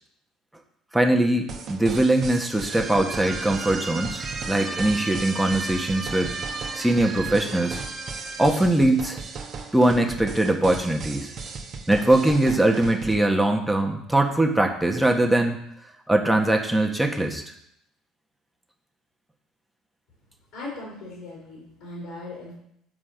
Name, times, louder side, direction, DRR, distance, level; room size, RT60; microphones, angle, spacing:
voice 1, 0.9-6.3 6.7-7.8 8.4-9.2 9.7-11.3 11.9-15.6 16.1-17.4, right 1 dB, 5° right, 2 dB, 1.5 m, -21 dB
sound 1, 1.5-13.2, right 4 dB, 50° right, 1.2 m, -37 dB
sound 2, 2.7-8.5, right 3 dB, 30° right, 1.6 m, -34 dB
voice 2, 20.5-22.5, left 2 dB, 65° left, -5 dB, 3.7 m, -38 dB
7.7 x 4.9 x 6.7 m, 0.76 s
hypercardioid pair, 65°, 0 cm